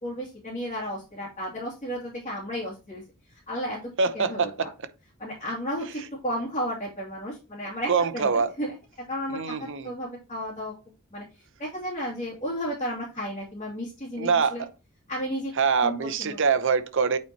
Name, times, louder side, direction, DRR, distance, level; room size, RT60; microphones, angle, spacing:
voice 1, 0.0-3.0 3.5-4.7 5.2-8.8 9.1-10.7 11.1-11.2 11.6-14.6 15.1-15.5 15.8-16.4, equal, 30° left, 2.4 m, -33 dB
voice 2, 4.0-4.7 7.9-8.5 9.3-9.9 14.2-14.7 15.6-17.2, right 5 dB, 60° right, 0.8 m, -24 dB
8.8 x 4.4 x 2.8 m
head